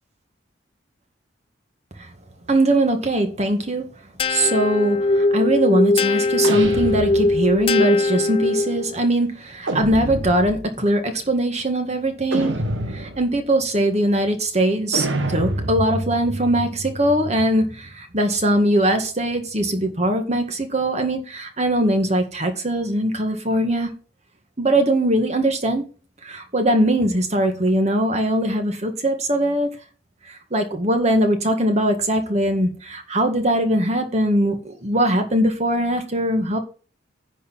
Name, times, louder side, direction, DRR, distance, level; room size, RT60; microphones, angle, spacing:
voice 1, 2.5-3.9 4.3-12.6 12.9-23.9 24.6-25.8 26.2-29.7 30.3-36.6, right 1 dB, 35° right, 1.7 m, -21 dB
sound 1, 4.2-9.0, left 2 dB, 30° left, 0.4 m, -20 dB
sound 2, 6.4-7.7 9.7-10.7 12.3-13.4 14.9-17.6, right 1 dB, 85° right, 1.5 m, -28 dB
10.0 x 4.5 x 7.5 m
head